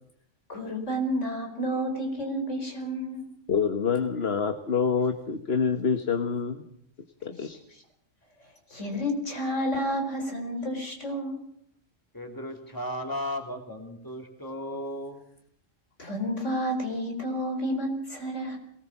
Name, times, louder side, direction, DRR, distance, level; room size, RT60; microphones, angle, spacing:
voice 1, 0.5-3.2 7.4-7.5 8.7-11.4 16.0-18.6, equal, 75° left, 3 dB, 5.0 m, -30 dB
voice 2, 3.5-6.6 7.2-7.6, left 6 dB, 55° left, 8 dB, 1.5 m, -26 dB
voice 3, 12.1-15.2, equal, 15° left, 3 dB, 3.1 m, -35 dB
23.0 x 19.0 x 7.2 m, 0.68 s
omnidirectional pair, 1.3 m